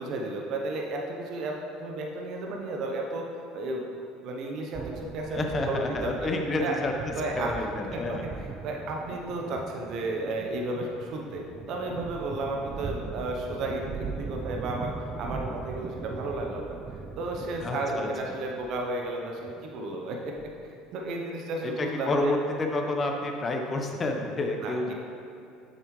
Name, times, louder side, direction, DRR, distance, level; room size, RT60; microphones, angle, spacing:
voice 1, 0.0-3.3 3.5-5.4 5.7-6.3 6.6-6.7 7.1-7.5 7.9-14.9 15.2-16.8 17.2-20.4 20.9-22.3 24.6-24.9, right 2 dB, 60° right, 0 dB, 0.8 m, -33 dB
sound 1, 4.7-20.9, right 5 dB, 35° right, 0.4 m, -40 dB
voice 2, 5.3-6.9 7.4-8.2 17.6-18.1 21.6-24.9, left 2 dB, 30° left, 3 dB, 1.0 m, -29 dB
7.2 x 6.7 x 3.2 m, 2.7 s
hypercardioid pair, 80°, 0 cm